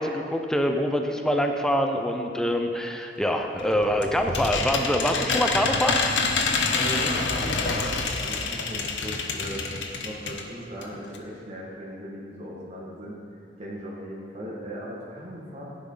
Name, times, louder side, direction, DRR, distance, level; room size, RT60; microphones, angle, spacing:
voice 1, 0.0-6.0, equal, 5° left, 3 dB, 0.7 m, -25 dB
sound 1, 3.6-10.5 10.8-10.9 11.1-11.2, left 4 dB, 85° left, 1.1 m, -27 dB
voice 2, 6.4-9.7 10.0-13.2 13.6-15.6, equal, 40° right, -5 dB, 1.8 m, -38 dB
15.5 x 10.5 x 4.0 m, 2.4 s
head